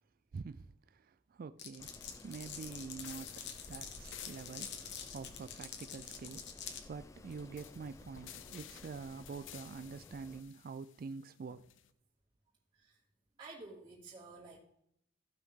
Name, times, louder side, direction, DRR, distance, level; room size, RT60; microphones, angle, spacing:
voice 1, 0.3-1.9 2.2-3.4 3.7-6.5 6.8-11.7, right 5 dB, 50° right, 0.3 m, -46 dB
Glass, 1.6-6.8, left 8 dB, 60° left, 1.3 m, -46 dB
Wind, 1.8-10.4, left 2 dB, 15° left, 0.4 m, -55 dB
sound 1, 3.0-11.9, left 11 dB, 80° left, 0.6 m, -56 dB
voice 2, 13.4-14.6, right 3 dB, 25° right, 2.9 m, -51 dB
15.5 x 6.3 x 3.7 m
head